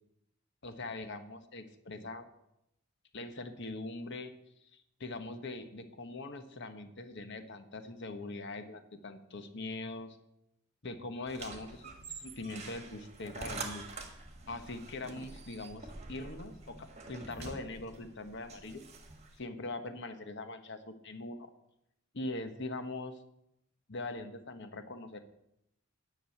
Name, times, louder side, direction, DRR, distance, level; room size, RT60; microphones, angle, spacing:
voice 1, 0.6-2.3 3.1-4.3 4.7-10.2 10.8-13.9 14.5-18.8 19.3-21.5 22.1-23.2 23.9-25.2, left 2 dB, 55° left, 9 dB, 1.1 m, -42 dB
sound 1, 11.3-19.4, right 3 dB, 30° right, 1.5 m, -46 dB
10.0 x 6.1 x 8.6 m, 0.82 s
head